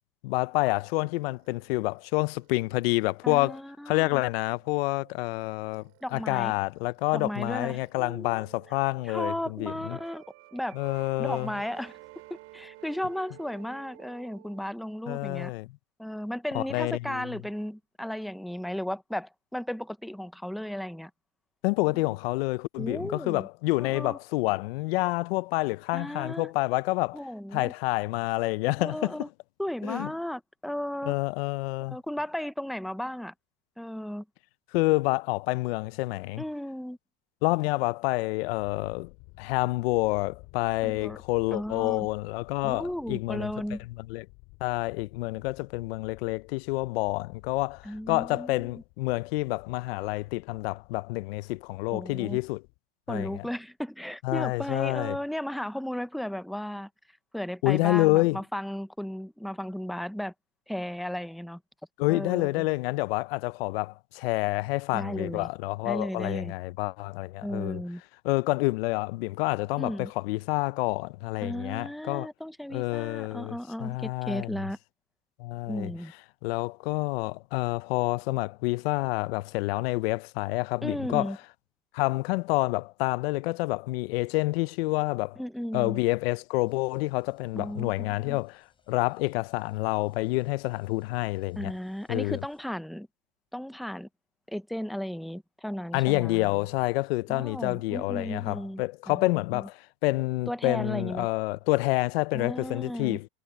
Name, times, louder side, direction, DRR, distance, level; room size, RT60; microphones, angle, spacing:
voice 1, 0.2-3.6 3.9-10.0 10.7-11.5 15.1-15.7 16.5-17.3 21.6-27.2 27.5-29.2 29.8-30.1 31.1-32.0 34.7-36.4 37.4-39.1 39.4-43.5 44.1-44.2 44.6-52.6 53.1-53.4 54.2-55.2 57.6-58.4 62.0-67.8 68.2-72.3 72.7-73.6 73.8-74.6 75.4-75.9 76.4-81.3 81.9-85.4 85.7-91.7 92.1-92.4 95.9-103.3, left 22 dB, 75° left, 0.5 m, -28 dB
sound 1, 0.7-7.9 8.2-14.6, right 19 dB, 45° right, 6.1 m, -54 dB
voice 2, 3.2-4.2 6.0-6.5 7.1-8.4 9.1-10.2 10.5-10.8 11.2-11.9 12.3-15.5 16.0-21.1 22.8-23.5 23.8-24.2 25.9-26.5 27.1-27.7 28.8-29.3 29.6-31.1 31.8-33.3 33.8-34.2 36.4-37.0 40.8-41.2 41.5-42.1 42.6-43.8 47.8-48.7 51.9-52.4 53.1-56.9 57.3-60.3 60.7-61.6 62.1-62.7 64.9-65.5 65.9-66.5 67.4-68.0 69.8-70.1 71.4-74.8 75.7-76.1 80.8-81.4 85.4-86.0 87.5-88.4 91.6-93.1 93.5-94.1 94.5-96.5 97.3-99.2 99.5-99.7 100.5-101.3 102.3-103.2, equal, ahead, 0.4 m, -35 dB
Thunder, 38.6-52.8, left 29 dB, 55° left, 3.7 m, -53 dB
sound 2, 86.7-92.7, left 5 dB, 15° left, 7.5 m, -69 dB
supercardioid pair, 155°, 31 cm